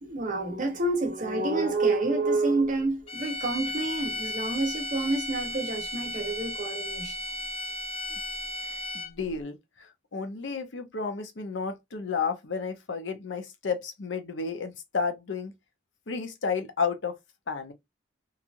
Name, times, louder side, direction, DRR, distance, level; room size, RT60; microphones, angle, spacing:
voice 1, 0.0-7.1, right 2 dB, 45° right, 1.1 m, -28 dB
sound 1, 3.1-9.3, left 1 dB, 30° left, 0.5 m, -35 dB
voice 2, 8.6-15.5 16.1-17.2 17.5-17.7, left 5 dB, 85° left, 0.7 m, -32 dB
3.0 x 2.5 x 2.4 m
head